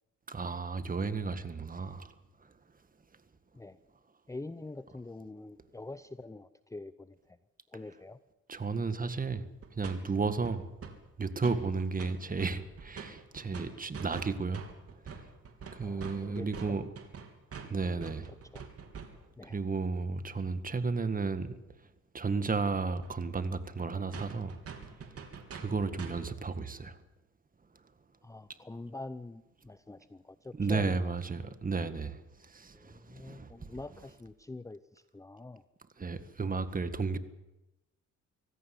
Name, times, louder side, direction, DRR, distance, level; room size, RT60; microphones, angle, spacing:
voice 1, 0.3-2.1 8.5-9.5 9.7-10.7 11.2-14.7 15.7-16.9 17.6-18.3 19.4-21.5 22.1-24.6 25.5-27.0 30.5-33.8 36.0-37.2, right 4 dB, 30° right, 1.8 m, -33 dB
voice 2, 4.3-7.4 7.7-8.2 15.8-16.9 18.3-18.7 19.4-19.6 28.2-31.0 32.7-35.6, left 2 dB, 10° left, 0.7 m, -45 dB
sound 1, 9.6-10.0 10.2-11.0 11.2-12.1 12.4-19.3 22.6-22.7 23.0-23.1 23.4-23.5 23.8-23.9 24.1-26.3, right 6 dB, 50° right, 3.6 m, -45 dB
25.0 x 17.0 x 7.8 m
cardioid pair, 90°, 30 cm